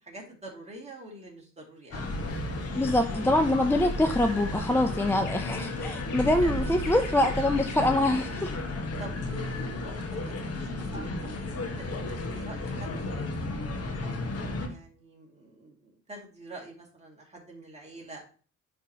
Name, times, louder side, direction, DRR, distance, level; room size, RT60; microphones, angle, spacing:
voice 1, 0.1-2.1 6.1-6.5 6.9-7.1 9.0-11.3 11.8-12.9 13.2-13.3 14.0-14.2 14.7-18.2, right 1 dB, 20° right, 2.3 m, -46 dB
sound 1, 1.9-8.3, left 2 dB, 80° left, 1.7 m, -41 dB
sound 2, 1.9-14.7, left 2 dB, 55° left, 1.2 m, -33 dB
voice 2, 2.7-8.5, left 1 dB, 10° left, 0.5 m, -25 dB
10.0 x 3.4 x 2.8 m
cardioid pair, 90°, 30 cm